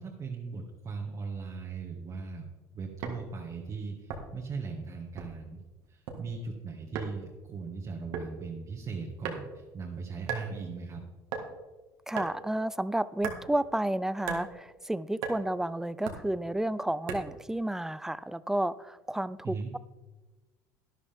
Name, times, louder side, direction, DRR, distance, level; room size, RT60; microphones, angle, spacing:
voice 1, 0.0-2.5 2.7-5.6 5.9-11.0 19.4-19.7, right 4 dB, 40° right, -1 dB, 1.7 m, -39 dB
sound 1, 3.0-3.2 4.1-4.5 5.2-5.5 5.8-6.2 6.9-7.1 8.1-8.3 9.2-9.6 10.3-10.5 11.3-11.5 12.1-12.4 13.2-13.4 14.2-14.5 15.2-15.4 16.1-16.3 17.1-17.4, right 6 dB, 75° right, 1.8 m, -36 dB
voice 2, 12.1-19.8, right 1 dB, 5° right, 18 dB, 0.4 m, -31 dB
11.5 x 11.0 x 3.6 m, 1.2 s
supercardioid pair, 95°, 9 cm